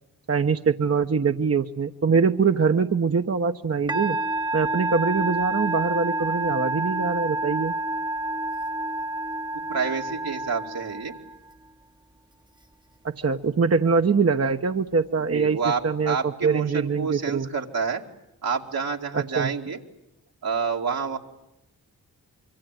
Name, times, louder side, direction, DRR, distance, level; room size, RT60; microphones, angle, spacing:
voice 1, 0.3-4.2 4.5-7.7 13.2-15.6 15.8-17.5 19.1-19.5, right 5 dB, 40° right, 6 dB, 1.1 m, -23 dB
Musical instrument, 3.9-11.5, right 2 dB, 10° right, 1.0 m, -28 dB
voice 2, 9.7-11.1 15.3-18.0 18.4-19.8 20.4-21.2, right 5 dB, 75° right, 1 dB, 2.6 m, -28 dB
25.5 x 24.0 x 9.2 m, 0.88 s
supercardioid pair, 40°, 37 cm